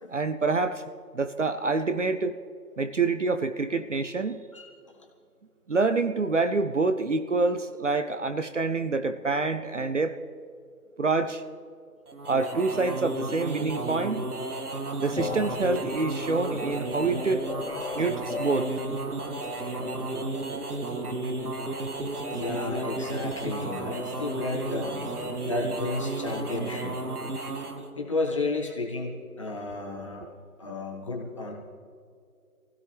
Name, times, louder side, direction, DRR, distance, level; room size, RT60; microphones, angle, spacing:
voice 1, 0.1-0.8 1.1-2.4 2.8-4.4 5.7-10.2 11.0-11.4 12.3-14.3 15.0-17.5 17.9-18.7, right 3 dB, 50° right, 10 dB, 0.6 m, -26 dB
sound 1, 12.1-27.9, right 2 dB, 70° right, 1.9 m, -33 dB
sound 2, 15.1-26.6, left 5 dB, 45° left, 0.8 m, -41 dB
voice 2, 22.3-24.9 25.4-26.9 28.0-30.3 30.6-31.5, left 2 dB, 20° left, -1 dB, 1.2 m, -32 dB
23.5 x 16.0 x 3.4 m, 2.3 s
figure-of-eight pair, 165°, 47 cm